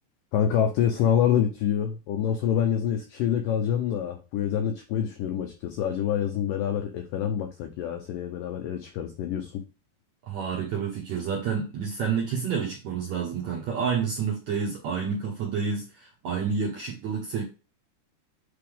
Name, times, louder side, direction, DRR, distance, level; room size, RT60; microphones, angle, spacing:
voice 1, 0.3-9.6, left 9 dB, 85° left, 5 dB, 1.9 m, -26 dB
voice 2, 10.2-17.4, right 6 dB, 70° right, -2 dB, 1.7 m, -29 dB
8.2 x 3.5 x 3.5 m, 0.31 s
omnidirectional pair, 4.8 m